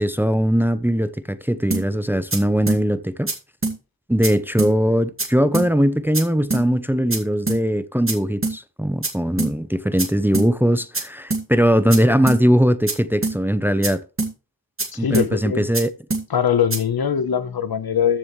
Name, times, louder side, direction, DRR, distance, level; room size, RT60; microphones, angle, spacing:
voice 1, 0.0-3.3 4.1-14.0 15.0-15.9, equal, 5° right, 0.6 m, -20 dB
sound 1, 1.7-1.8 2.3-2.4 2.7-2.8 3.3-3.4 3.6-3.8 4.2-4.3 4.6-4.7 5.2-5.3 5.5-5.7 6.1-6.2 6.5-6.6 7.1-7.2 7.5-7.6 8.1-8.2 8.4-8.6 9.0-9.1 9.4-9.5 10.0-10.1 10.3-10.5 10.9-11.0 11.3-11.4 11.9-12.0 12.3-12.4 12.9-13.0 13.2-13.4 13.8-13.9 14.2-14.3 14.8-14.9 15.1-15.3 15.7-15.8 16.1-16.2 16.7-16.8, right 3 dB, 35° right, 2.3 m, -24 dB
voice 2, 14.9-15.7 16.3-18.2, left 8 dB, 70° left, 1.0 m, -21 dB
14.0 x 6.8 x 3.2 m
wide cardioid pair, 100°, 38 cm